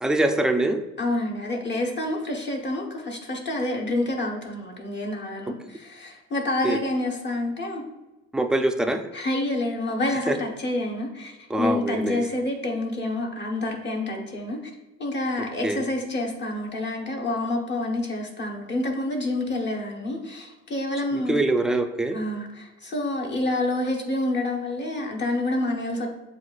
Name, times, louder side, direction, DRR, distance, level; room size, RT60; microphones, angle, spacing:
voice 1, 0.0-0.8 6.6-6.8 8.3-9.1 10.3-10.4 11.5-12.2 15.6-15.8 21.1-22.2, right 1 dB, ahead, 5 dB, 0.3 m, -24 dB
voice 2, 1.0-7.8 9.1-14.6 15.0-21.5 22.1-26.1, left 2 dB, 35° left, 0 dB, 1.1 m, -28 dB
7.4 x 2.5 x 2.4 m, 1.1 s
cardioid pair, 90°, 30 cm